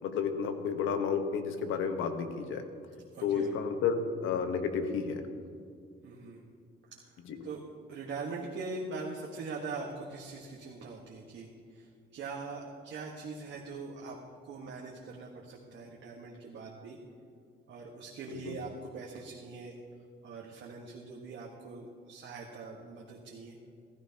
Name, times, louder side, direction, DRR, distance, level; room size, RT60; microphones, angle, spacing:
voice 1, 0.0-2.6 3.2-5.2 7.2-7.4 18.3-18.6, left 6 dB, 90° left, 7 dB, 1.1 m, -31 dB
voice 2, 3.1-3.5 6.0-6.4 6.9-7.6 7.9-17.0 17.7-19.8 20.2-23.6, right 4 dB, 70° right, -2 dB, 1.4 m, -42 dB
15.0 x 15.0 x 2.9 m, 2.3 s
cardioid pair, 90°, 20 cm